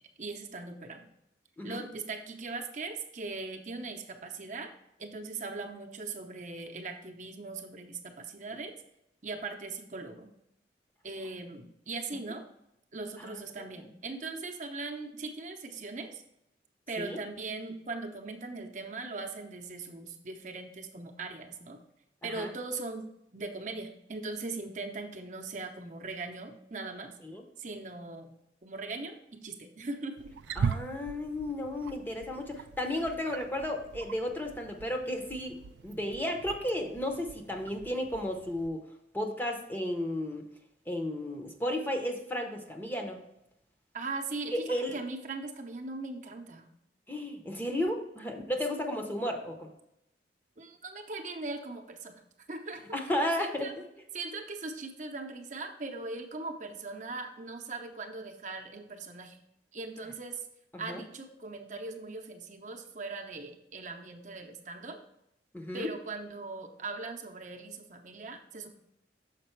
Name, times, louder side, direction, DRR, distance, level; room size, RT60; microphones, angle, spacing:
voice 1, 0.2-1.0 1.6-4.7 5.0-8.7 9.2-10.3 11.0-12.4 12.9-16.2 16.9-21.8 22.2-23.1 23.3-27.1 27.6-28.3 28.6-29.2 29.4-30.3 43.9-46.7 50.6-52.2 52.5-52.8 53.4-53.7 54.1-59.4 59.7-60.4 60.8-65.0 65.7-68.7, right 3 dB, 45° right, 3 dB, 0.7 m, -40 dB
voice 2, 13.2-13.7 17.0-17.2 22.2-22.5 27.2-27.4 30.6-35.6 35.8-38.8 39.1-40.4 40.9-43.2 44.5-45.0 47.1-49.7 52.9-53.7 60.9-61.0 65.5-65.9, left 1 dB, 10° left, 3 dB, 0.7 m, -33 dB
Wild animals, 30.2-38.7, right 6 dB, 80° right, 0.3 m, -40 dB
6.6 x 5.1 x 4.5 m, 0.79 s
head